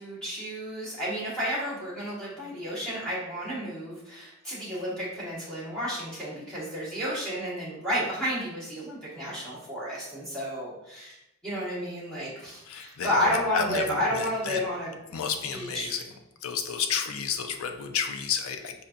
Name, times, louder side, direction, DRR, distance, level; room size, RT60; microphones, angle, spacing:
voice 1, 0.0-11.2 11.4-15.0 15.5-15.9, equal, 5° left, -10 dB, 1.3 m, -31 dB
voice 2, 12.7-14.6 15.1-16.0 16.4-18.7, left 6 dB, 70° left, 5 dB, 0.4 m, -31 dB
4.3 x 2.6 x 2.5 m, 0.89 s
head